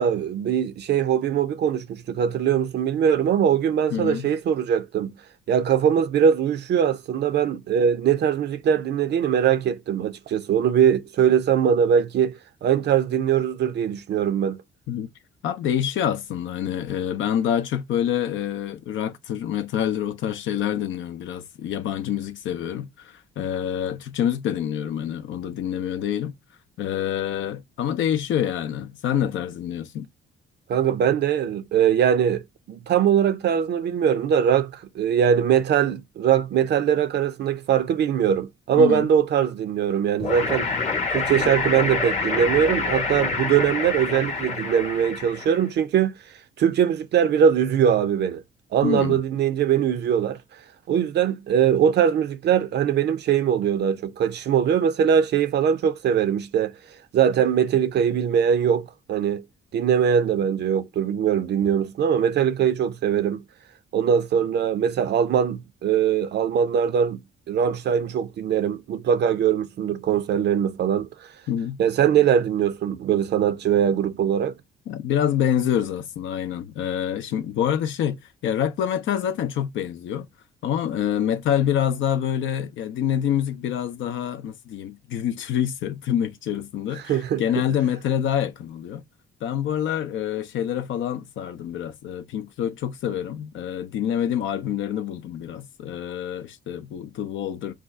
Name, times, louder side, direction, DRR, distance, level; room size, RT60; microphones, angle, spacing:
voice 1, 0.0-5.1 5.5-14.6 30.7-32.4 32.7-40.7 41.1-46.1 46.6-48.4 48.7-50.4 50.9-56.7 57.1-59.4 59.7-63.4 63.9-67.2 67.5-71.1 71.8-74.6 87.1-87.4, right 8 dB, 60° right, 0.5 m, -21 dB
voice 2, 3.9-4.3 14.9-15.1 15.4-26.4 26.8-30.1 38.8-39.1 48.8-49.2 71.5-71.8 74.9-80.3 80.6-89.0 89.4-97.7, left 9 dB, 75° left, 0.6 m, -26 dB
sound 1, 40.2-45.6, left 4 dB, 35° left, 0.9 m, -27 dB
2.6 x 2.3 x 3.5 m
cardioid pair, 90°, 20 cm